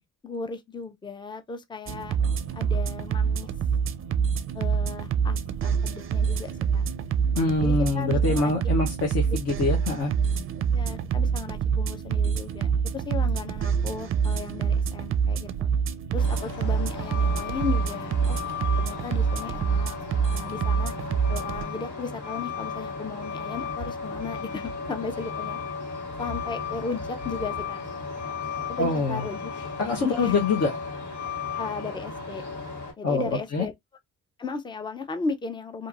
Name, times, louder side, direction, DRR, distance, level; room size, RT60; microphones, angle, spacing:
voice 1, 0.2-2.2 2.5-3.5 4.5-6.8 7.6-8.5 10.7-15.7 16.1-18.4 18.8-20.0 20.3-20.9 21.3-25.6 26.2-27.8 28.7-29.7 30.0-30.3 31.6-32.4 33.0-33.7 34.4-35.9, left 5 dB, 15° left, 0.5 m, -35 dB
sound 1, 1.9-21.6, right 6 dB, 45° right, 0.4 m, -26 dB
voice 2, 7.4-10.1 28.8-29.3 29.8-30.8 33.0-33.7, left 3 dB, 55° left, 0.9 m, -25 dB
Truck, 16.2-32.9, left 5 dB, 75° left, 1.6 m, -35 dB
2.9 x 2.6 x 2.4 m
cardioid pair, 90°, 30 cm